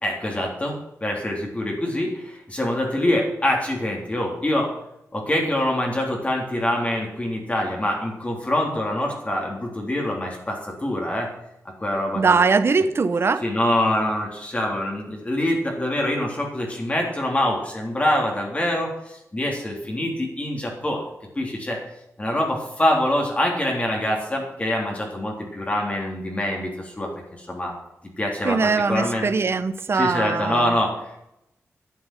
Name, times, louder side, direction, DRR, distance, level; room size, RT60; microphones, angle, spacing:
voice 1, 0.0-4.7 5.1-11.3 11.8-12.4 13.4-21.0 21.3-21.8 22.2-27.1 27.4-27.7 28.2-29.2 29.9-31.2, left 1 dB, 25° left, -1 dB, 3.5 m, -25 dB
voice 2, 12.1-13.4 28.4-30.7, right 4 dB, 50° right, 13 dB, 0.9 m, -21 dB
11.5 x 7.9 x 9.1 m, 0.83 s
wide cardioid pair, 100°, 5 cm